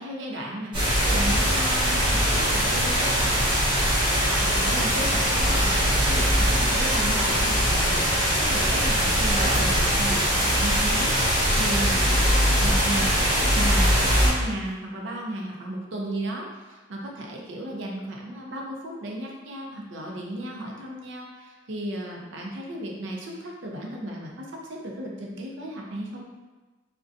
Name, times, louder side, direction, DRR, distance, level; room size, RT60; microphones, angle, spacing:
voice 1, 0.0-3.6 4.1-12.3 12.6-26.2, right 1 dB, 80° right, -1 dB, 0.5 m, -34 dB
sound 1, 0.7-14.3, equal, 25° right, 0.8 m, -22 dB
2.5 x 2.2 x 2.5 m, 1.3 s
head